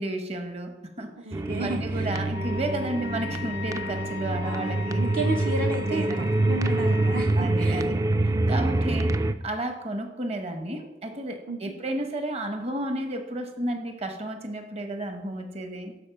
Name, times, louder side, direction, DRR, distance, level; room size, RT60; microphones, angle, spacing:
voice 1, 0.0-5.0 5.9-6.3 7.4-8.0 8.5-16.0, right 1 dB, 35° right, 6 dB, 1.0 m, -32 dB
voice 2, 1.2-2.1 4.4-7.9 8.6-9.0 11.5-11.7, right 2 dB, 55° right, 2 dB, 0.7 m, -33 dB
sound 1, 1.3-9.3, right 2 dB, 20° right, 0.3 m, -26 dB
Wind instrument woodwind instrument, 2.3-7.2, left 9 dB, 65° left, 0.3 m, -40 dB
11.5 x 4.5 x 5.7 m, 0.97 s
head